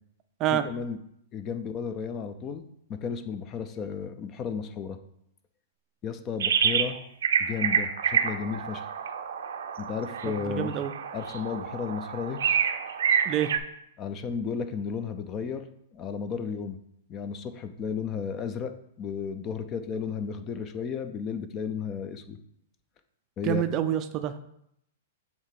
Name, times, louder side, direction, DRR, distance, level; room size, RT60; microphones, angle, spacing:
voice 1, 0.5-1.0 1.3-5.0 6.0-7.0 7.4-8.9 9.8-10.7 11.1-12.4 14.0-15.7 15.9-16.8 17.1-18.7 19.0-22.4 23.4-23.6, left 6 dB, 25° left, 10 dB, 0.5 m, -33 dB
sound 1, 6.4-6.9 7.2-13.6, right 8 dB, 80° right, 0.6 m, -28 dB
voice 2, 10.4-10.9 13.3-13.5 23.4-24.4, right 11 dB, 30° right, 10 dB, 0.4 m, -27 dB
7.8 x 2.9 x 5.8 m, 0.75 s
hypercardioid pair, 145°, 0 cm